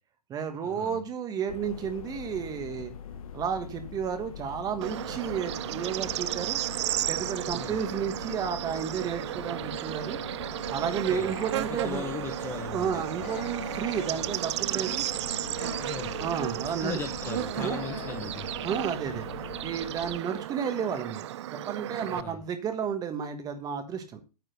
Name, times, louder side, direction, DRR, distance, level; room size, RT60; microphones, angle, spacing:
voice 1, 0.3-2.9 3.3-6.6 7.1-10.2 10.7-12.1 12.7-15.0 16.2-17.0 17.6-17.8 18.6-19.3 19.6-21.3 21.5-24.2, right 7 dB, 20° right, 1.3 m, -32 dB
sound 1, 1.5-20.2, left 8 dB, 60° left, 0.9 m, -43 dB
Bird / Insect, 4.8-22.2, right 13 dB, 45° right, 0.4 m, -34 dB
voice 2, 10.8-11.3 11.7-13.0 15.8-16.2 16.8-18.5 22.1-22.4, left 5 dB, 10° left, 0.9 m, -38 dB
Human voice / Animal, 11.2-12.0 13.1-14.1 15.4-16.2 17.4-18.2, left 7 dB, 35° left, 2.6 m, -45 dB
9.2 x 4.8 x 6.5 m
hypercardioid pair, 130°, 21 cm